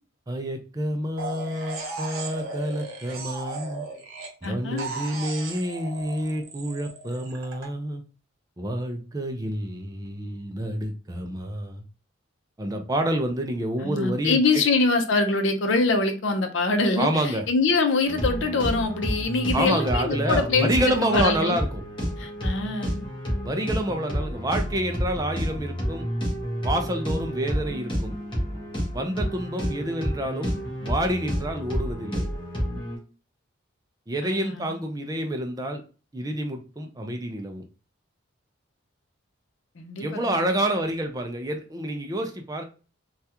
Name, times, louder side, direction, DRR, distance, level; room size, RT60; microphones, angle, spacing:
voice 1, 0.3-3.8 4.4-8.0 8.6-11.8 12.6-14.6 17.0-17.5 19.5-21.8 23.4-26.1 26.6-28.1 28.9-30.5 30.8-32.3 34.1-35.8 36.1-37.6 40.0-42.6, right 1 dB, 20° right, 0.4 m, -28 dB
sound 1, 1.2-4.5 4.8-7.7, right 3 dB, 85° right, 0.9 m, -36 dB
voice 2, 4.4-4.9 13.8-20.7 21.1-21.6 22.2-23.0 34.2-34.8 39.8-40.5, left 3 dB, 70° left, 0.6 m, -24 dB
sound 2, 18.1-33.0, equal, 25° left, 1.1 m, -29 dB
3.4 x 2.3 x 2.8 m
head